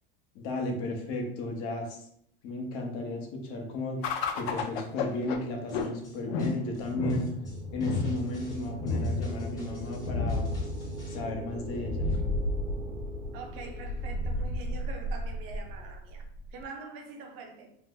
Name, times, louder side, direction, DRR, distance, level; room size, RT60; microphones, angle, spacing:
voice 1, 0.3-2.1 2.4-4.0 4.3-7.3 7.7-10.5 11.1-12.2, left 1 dB, 50° left, 0.8 m, -34 dB
sound 1, 4.0-16.6, left 3 dB, 90° left, 0.5 m, -33 dB
sound 2, 5.7-11.2, left 2 dB, 15° left, 0.7 m, -52 dB
sound 3, 7.4-15.8, right 1 dB, 90° right, 0.7 m, -42 dB
voice 2, 13.3-17.7, right 4 dB, 45° right, 0.6 m, -44 dB
2.6 x 2.0 x 3.7 m
supercardioid pair, 150°, 30 cm